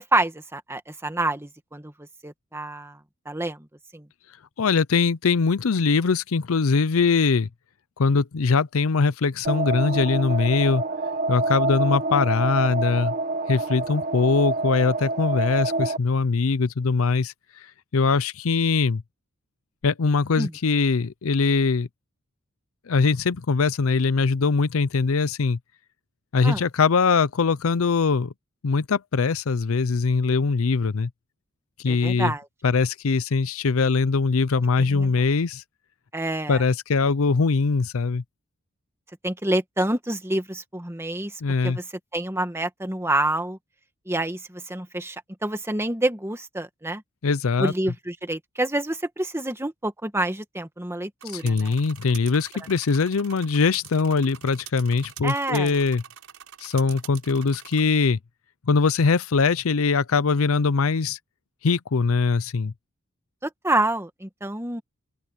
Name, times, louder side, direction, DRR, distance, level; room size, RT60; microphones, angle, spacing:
voice 1, 0.0-1.9 2.2-3.0 3.3-3.6 3.9-4.1 20.4-20.5 26.4-26.6 31.9-32.4 34.9-35.1 36.1-36.6 39.2-41.3 41.6-41.8 42.1-43.6 44.1-45.2 45.4-47.0 47.6-51.7 55.2-55.7 63.4-64.8, right 1 dB, 10° right, 1.8 m, -27 dB
voice 2, 4.6-7.5 8.0-10.8 11.3-13.1 13.5-17.3 17.9-19.0 19.8-21.9 22.9-25.6 26.3-28.3 28.6-31.1 31.8-32.3 32.6-35.6 36.5-38.2 41.4-41.8 47.2-47.7 51.3-56.0 56.6-58.2 58.7-61.2 61.6-62.7, left 4 dB, 70° left, 0.6 m, -22 dB
sound 1, 9.4-16.0, right 2 dB, 45° right, 1.7 m, -27 dB
sound 2, 51.2-57.8, right 10 dB, 75° right, 6.6 m, -45 dB
open air
head